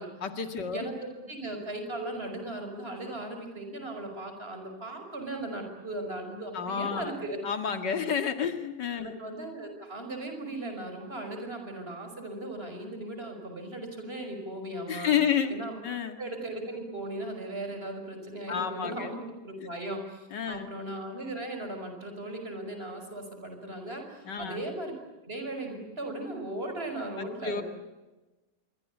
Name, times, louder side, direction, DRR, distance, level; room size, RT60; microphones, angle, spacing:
voice 1, 0.2-0.9 6.5-7.1 7.4-9.2 14.9-15.6 15.8-16.2 18.5-19.1 19.6-19.7 20.3-20.7 24.2-24.6 27.2-27.6, left 7 dB, 80° left, 8 dB, 2.6 m, -30 dB
voice 2, 0.7-7.4 9.0-15.1 15.5-15.7 16.2-24.9 25.3-27.6, right 1 dB, 35° right, 4 dB, 5.8 m, -37 dB
26.0 x 23.5 x 8.5 m, 1.1 s
omnidirectional pair, 1.8 m